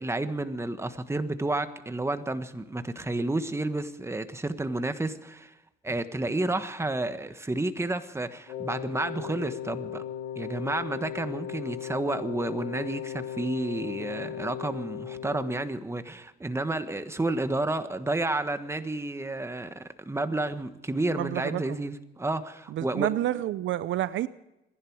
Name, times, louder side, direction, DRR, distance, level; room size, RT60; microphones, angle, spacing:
voice 1, 0.0-5.5 5.8-10.0 10.4-23.1, right 2 dB, 15° right, 1.4 m, -31 dB
Wind instrument woodwind instrument, 8.5-15.8, left 9 dB, 90° left, 1.6 m, -37 dB
voice 2, 21.1-21.8 22.7-24.3, right 13 dB, 75° right, 0.6 m, -29 dB
27.0 x 11.0 x 4.7 m
cardioid pair, 90°, 20 cm